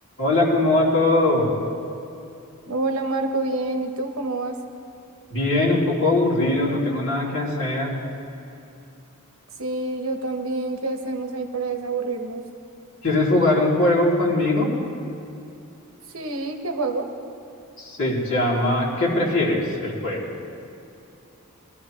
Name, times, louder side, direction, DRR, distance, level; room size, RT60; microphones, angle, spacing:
voice 1, 0.2-1.5 5.3-7.9 13.0-14.7 17.8-20.3, left 2 dB, 60° left, -6 dB, 3.0 m, -21 dB
voice 2, 2.7-4.6 9.6-12.4 16.1-17.1, right 3 dB, 70° right, 4 dB, 1.1 m, -27 dB
20.0 x 13.0 x 3.2 m, 2.7 s
head